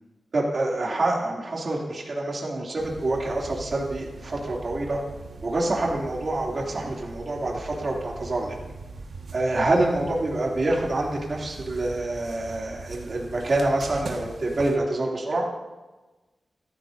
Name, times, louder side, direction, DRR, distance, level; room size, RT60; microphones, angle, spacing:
voice 1, 0.3-5.0 5.4-8.6 9.3-15.4, right 2 dB, 50° right, -2 dB, 2.6 m, -26 dB
sound 1, 2.8-14.8, right 3 dB, 80° right, 1.5 m, -41 dB
15.0 x 13.5 x 2.6 m, 1.2 s
wide cardioid pair, 105°, 0 cm